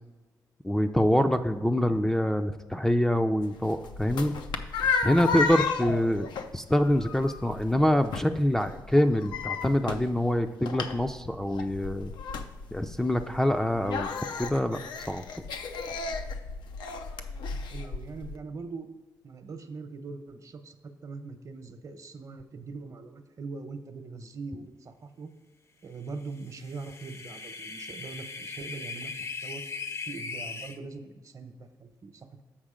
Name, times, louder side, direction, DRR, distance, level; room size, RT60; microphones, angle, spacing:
voice 1, 0.6-4.3 5.0-12.1 12.7-14.1 14.4-14.8 15.1-15.2, left 1 dB, 5° left, 6 dB, 0.4 m, -25 dB
sound 1, 3.4-18.4, left 4 dB, 85° left, 0.6 m, -34 dB
voice 2, 17.5-18.9 19.2-20.8 21.0-25.3 25.8-29.1 29.4-29.6 30.1-32.4, right 4 dB, 50° right, 8 dB, 0.9 m, -41 dB
sound 2, 26.5-30.8, left 4 dB, 40° left, 0.7 m, -39 dB
7.4 x 5.2 x 5.0 m, 1.2 s
cardioid pair, 75°, 7 cm